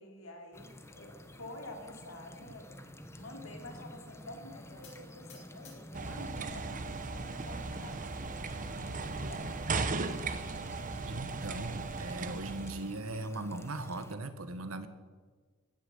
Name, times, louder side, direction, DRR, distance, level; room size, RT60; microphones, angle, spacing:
voice 1, 0.0-2.7 3.2-8.4 9.2-10.0, left 1 dB, 80° left, 3 dB, 2.9 m, -49 dB
sound 1, 0.5-14.1, left 1 dB, 15° left, 1.0 m, -52 dB
sound 2, 4.8-6.6 7.0-7.6 8.2-8.3 8.6-8.7 9.0-9.1 10.2-10.9, left 6 dB, 60° left, 5.4 m, -60 dB
sound 3, 5.9-13.0, right 3 dB, 40° right, 0.9 m, -37 dB
voice 2, 11.1-14.9, right 2 dB, 80° right, 10 dB, 1.3 m, -39 dB
15.5 x 10.0 x 7.9 m, 1.5 s
head